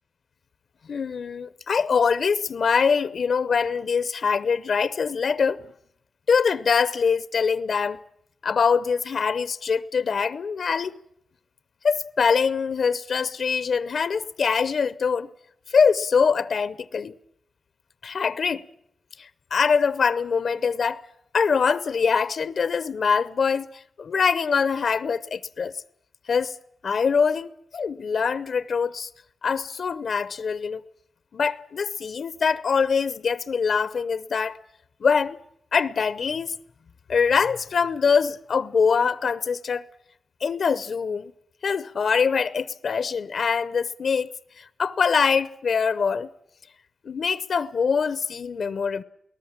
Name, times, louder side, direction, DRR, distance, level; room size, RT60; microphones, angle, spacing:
voice 1, 0.9-5.6 6.3-8.0 8.4-11.0 11.8-15.3 15.7-17.1 18.0-18.6 19.2-21.0 21.3-25.7 26.3-26.6 26.8-29.1 29.4-30.8 31.3-34.6 35.0-35.4 35.7-36.5 37.1-39.8 40.4-41.3 41.6-44.3 44.6-46.3 47.0-49.0, left 5 dB, 65° left, 0.7 m, -23 dB
21.5 x 18.5 x 7.3 m
cardioid pair, 70°, 0 cm